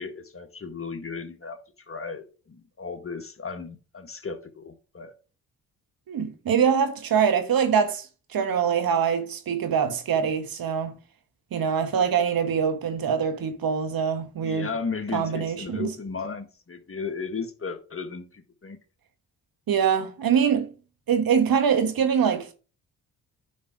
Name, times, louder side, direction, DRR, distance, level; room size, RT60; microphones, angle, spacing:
voice 1, 0.0-1.6 1.9-5.1 14.4-18.8, left 4 dB, 35° left, 1.6 m, -35 dB
voice 2, 6.1-11.0 11.5-14.7 15.1-15.9 19.7-20.7 21.1-22.5, right 7 dB, 60° right, 1.4 m, -24 dB
9.3 x 5.6 x 3.7 m
hypercardioid pair, 45°, 40 cm